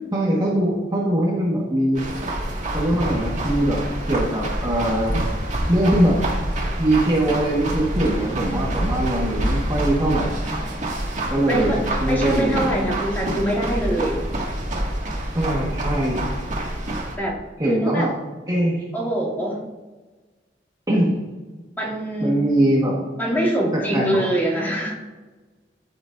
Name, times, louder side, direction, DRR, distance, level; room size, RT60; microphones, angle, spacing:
voice 1, 0.1-2.0 2.7-3.8 4.1-5.2 5.7-6.2 6.8-10.3 11.3-12.7 15.3-16.2 17.6-18.1 18.5-18.8 20.9-21.1 22.2-23.0 23.9-24.2, right 1 dB, 25° right, -4 dB, 1.5 m, -21 dB
sound 1, 1.9-17.2, right 1 dB, 45° right, 2.0 m, -27 dB
voice 2, 11.5-14.2 17.2-18.1 18.9-19.6 21.8-22.4 23.2-24.9, right 1 dB, 10° left, -7 dB, 2.6 m, -24 dB
14.0 x 6.2 x 2.6 m, 1.3 s
head